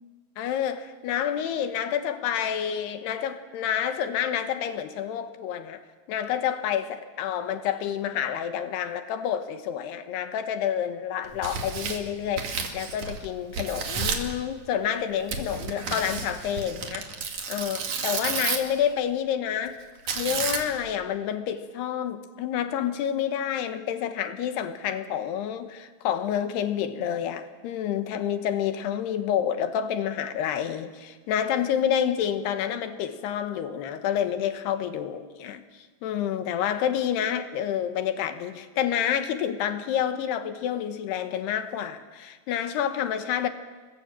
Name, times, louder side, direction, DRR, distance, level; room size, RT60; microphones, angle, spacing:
voice 1, 0.4-5.8 6.1-17.1 17.5-35.6 36.0-43.5, left 9 dB, 70° left, 3.0 m, -28 dB
Tearing, 11.2-13.3 13.5-14.3 15.3-18.8 20.1-20.9, right 5 dB, 50° right, 2.9 m, -31 dB
29.0 x 21.5 x 7.5 m
omnidirectional pair, 5.3 m